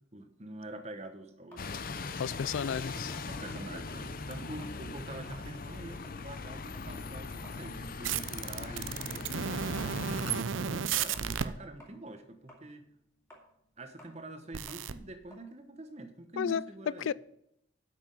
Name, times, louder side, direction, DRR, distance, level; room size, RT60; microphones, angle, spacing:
voice 1, 0.1-1.6 3.1-9.5 10.3-12.9 13.8-17.1, right 2 dB, 35° right, 1.1 m, -45 dB
sound 1, 1.5-4.1 4.5-4.8 5.2-11.5 11.8-16.6, equal, 15° left, 2.6 m, -58 dB
Bus, 1.6-10.4, left 3 dB, 50° left, 0.6 m, -40 dB
voice 2, 2.2-3.1 16.4-17.1, left 7 dB, 85° left, 0.4 m, -33 dB
sound 2, 8.0-11.5 14.5-14.9, right 7 dB, 85° right, 0.6 m, -33 dB
8.5 x 6.1 x 7.6 m
head